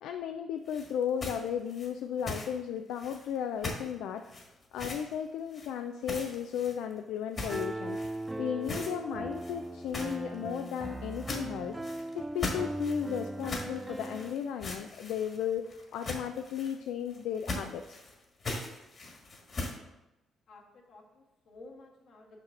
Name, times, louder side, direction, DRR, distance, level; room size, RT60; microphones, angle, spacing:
voice 1, 0.0-4.2 4.7-8.0 8.4-18.0, left 8 dB, 90° left, 6 dB, 0.3 m, -35 dB
sound 1, 0.6-2.6 2.9-3.4 3.6-3.9 4.2-5.1 5.5-5.7 6.0-7.0 7.3-8.3 8.6-8.9 9.3-19.8, left 2 dB, 40° left, 1.6 m, -40 dB
Piano, 7.5-14.3, right 1 dB, 10° right, 0.3 m, -38 dB
voice 2, 20.5-22.4, left 2 dB, 70° left, -2 dB, 1.6 m, -53 dB
5.9 x 5.8 x 3.7 m, 0.99 s
cardioid pair, 90°, 0 cm